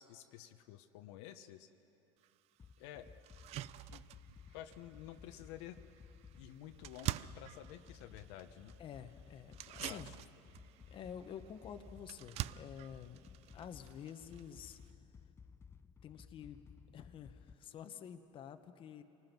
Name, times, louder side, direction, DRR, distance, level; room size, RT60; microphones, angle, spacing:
voice 1, 0.0-1.7 2.8-3.1 3.9-4.0 4.5-5.8 6.4-8.8 9.6-10.2, left 12 dB, 70° left, 8 dB, 1.0 m, -51 dB
sound 1, 2.2-2.3 2.8-2.9 3.2-14.9, right 15 dB, 45° right, 0.5 m, -47 dB
sound 2, 2.6-17.5, left 5 dB, 15° left, 0.6 m, -58 dB
voice 2, 8.8-10.1 10.8-15.0 16.0-16.6 16.9-19.0, left 8 dB, 35° left, 8 dB, 1.1 m, -49 dB
28.0 x 20.0 x 6.1 m, 2.8 s
supercardioid pair, 120°, 14 cm